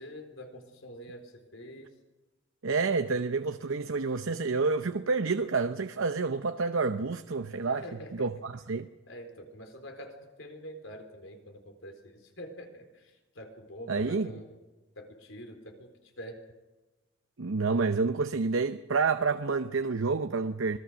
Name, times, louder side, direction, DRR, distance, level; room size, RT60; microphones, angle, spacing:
voice 1, 0.0-1.9 7.6-8.3 9.1-14.6 15.0-16.4, equal, 75° left, 4.2 m, -46 dB
voice 2, 2.6-7.8 8.1-8.9 13.9-14.3 17.4-20.8, right 4 dB, 85° right, 0.8 m, -29 dB
25.5 x 19.5 x 6.3 m
head